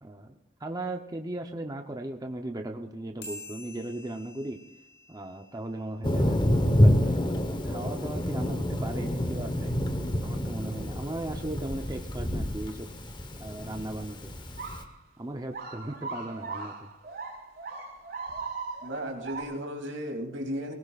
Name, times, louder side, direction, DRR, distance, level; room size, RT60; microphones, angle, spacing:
voice 1, 0.0-4.6 5.1-6.5 6.8-9.8 10.2-12.9 13.4-14.3 15.2-16.9, right 1 dB, 20° right, 4 dB, 0.7 m, -37 dB
sound 1, 3.2-6.1, left 2 dB, 65° left, 6.7 m, -47 dB
Thunder, 6.0-14.8, equal, 25° left, 1.1 m, -27 dB
sound 2, 14.6-15.0 15.4-19.4, right 4 dB, 55° right, 4.8 m, -39 dB
voice 2, 18.8-20.7, equal, 80° right, 2 dB, 2.8 m, -35 dB
21.0 x 17.5 x 2.4 m, 0.87 s
head